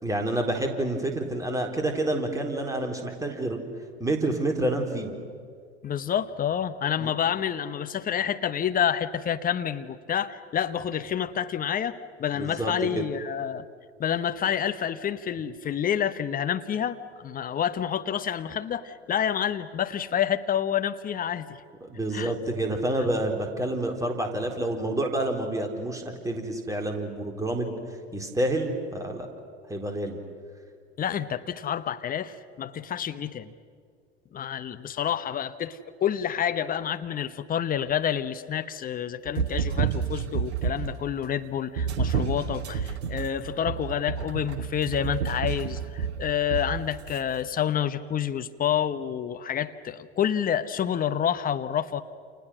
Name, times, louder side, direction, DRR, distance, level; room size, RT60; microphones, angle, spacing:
voice 1, 0.0-3.6 4.0-5.1 7.0-7.1 12.3-13.1 21.8-27.8 28.1-29.3 29.7-30.2, right 1 dB, 10° right, 3 dB, 4.0 m, -28 dB
voice 2, 5.8-13.6 14.0-21.5 22.1-22.3 31.0-33.5 34.3-52.0, left 9 dB, 25° left, 10 dB, 1.1 m, -28 dB
sound 1, 39.3-41.0 41.8-47.2, right 6 dB, 65° right, 1.7 m, -29 dB
29.5 x 28.5 x 6.3 m, 2.1 s
figure-of-eight pair, 75°, 34 cm